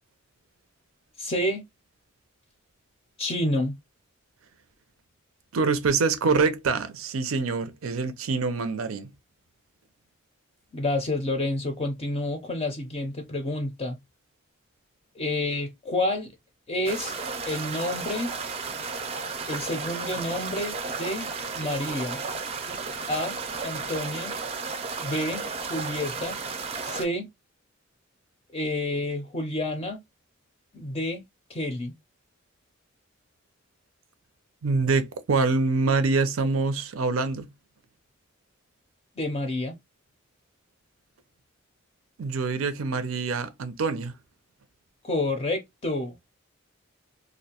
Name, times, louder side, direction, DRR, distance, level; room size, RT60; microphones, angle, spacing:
voice 1, 1.2-1.6 3.2-3.7 10.7-14.0 15.2-16.3 16.7-17.1 17.5-18.3 19.5-22.2 23.1-23.4 23.6-24.4 25.0-25.4 25.7-26.4 26.8-27.3 28.5-30.0 30.7-31.2 31.5-31.9 39.2-39.8 45.0-46.2, left 1 dB, 30° left, 0.4 m, -29 dB
voice 2, 5.5-9.1 34.6-37.5 42.2-44.1, right 4 dB, 90° right, 0.5 m, -25 dB
sound 1, 16.8-27.0, right 4 dB, 30° right, 0.4 m, -33 dB
2.5 x 2.1 x 2.7 m
head